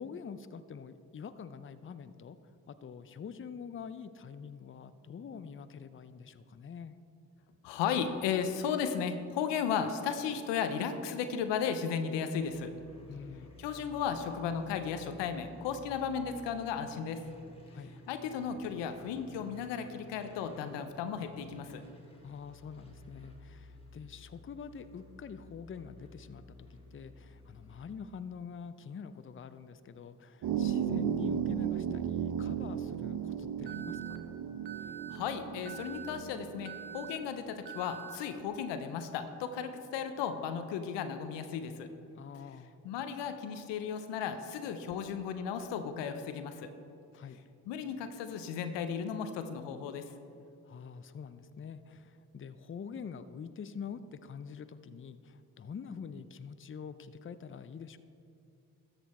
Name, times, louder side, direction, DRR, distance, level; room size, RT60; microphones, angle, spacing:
voice 1, 0.0-2.4 2.7-6.9 13.1-13.5 17.7-18.0 22.2-26.7 26.9-34.2 42.2-42.7 47.1-47.4 50.7-58.0, left 6 dB, 30° left, 12 dB, 0.6 m, -45 dB
voice 2, 7.6-12.7 13.6-17.2 18.1-21.8 35.1-41.9 42.8-46.7 47.7-50.0, left 7 dB, 85° left, 8 dB, 0.7 m, -35 dB
sound 1, 12.4-28.0, left 1 dB, 15° left, 2.2 m, -54 dB
sound 2, 30.4-37.4, right 9 dB, 55° right, 0.7 m, -35 dB
Alarm, 33.7-34.2 34.7-35.2 35.7-36.2 36.7-37.2 37.7-38.2, right 8 dB, 80° right, 1.0 m, -45 dB
13.0 x 6.9 x 4.2 m, 2.5 s
hypercardioid pair, 40°, 42 cm